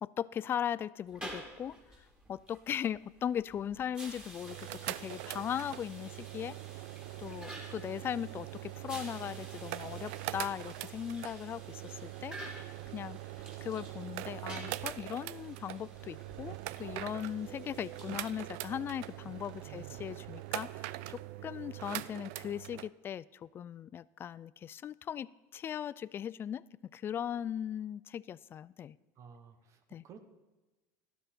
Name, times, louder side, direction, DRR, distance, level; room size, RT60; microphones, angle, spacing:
voice 1, 0.0-4.6 4.9-6.6 7.2-13.2 13.6-26.6 26.9-29.0 29.9-30.0, left 9 dB, 30° left, 20 dB, 0.3 m, -39 dB
sound 1, 1.0-20.6, right 1 dB, 10° right, 2.8 m, -52 dB
sound 2, 4.4-22.9, right 17 dB, 75° right, 0.5 m, -43 dB
voice 2, 19.7-20.0 29.2-29.8 30.0-30.2, right 7 dB, 40° right, 8 dB, 1.2 m, -53 dB
13.0 x 12.5 x 4.4 m, 1.2 s
supercardioid pair, 125°, 8 cm